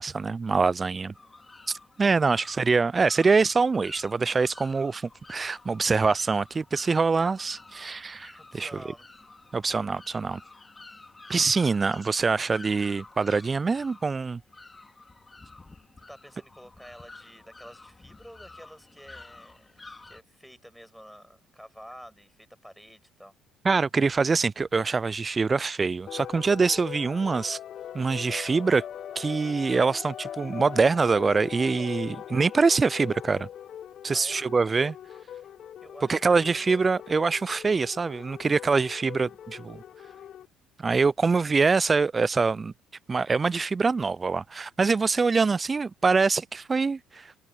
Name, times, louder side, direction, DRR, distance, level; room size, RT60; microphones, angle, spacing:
voice 1, 0.0-1.1 1.7-8.7 9.5-10.4 11.3-14.4 23.6-27.6 27.9-28.8 29.2-33.5 34.0-35.0 36.1-39.8 40.8-42.7 43.1-47.3, right 4 dB, 30° right, 0.6 m, -24 dB
voice 2, 1.0-1.3 8.4-9.1 16.1-19.8 20.0-23.4 34.1-34.4 35.8-36.7, equal, ahead, 6.8 m, -49 dB
sound 1, 1.1-20.2, left 3 dB, 20° left, 3.9 m, -50 dB
sound 2, 26.1-40.5, left 10 dB, 55° left, 1.5 m, -41 dB
hypercardioid pair, 55°, 0 cm